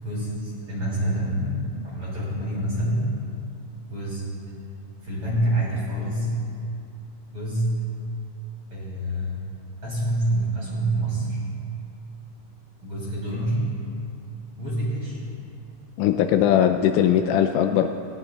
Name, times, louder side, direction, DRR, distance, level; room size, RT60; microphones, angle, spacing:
voice 1, 0.0-3.0 3.9-4.2 5.0-6.4 7.3-7.9 8.7-9.4 9.8-11.4 12.8-13.7 14.6-15.2, right 1 dB, 30° right, -7 dB, 2.9 m, -26 dB
voice 2, 16.0-17.9, left 10 dB, 85° left, 6 dB, 3.0 m, -20 dB
19.5 x 18.0 x 2.3 m, 2.5 s
omnidirectional pair, 6.0 m